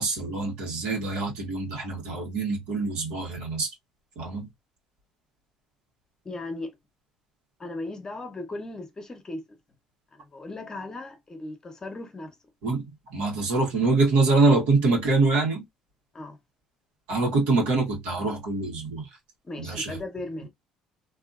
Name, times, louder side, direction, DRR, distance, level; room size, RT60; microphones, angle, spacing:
voice 1, 0.0-3.7 4.2-4.5 12.6-15.6 17.1-19.1 19.6-20.0, right 3 dB, 80° right, 1.4 m, -24 dB
voice 2, 6.2-6.8 7.6-9.6 10.1-12.4 16.1-16.4 19.4-20.5, left 2 dB, 30° left, 0.9 m, -37 dB
2.7 x 2.7 x 2.4 m
supercardioid pair, 80°, 2 cm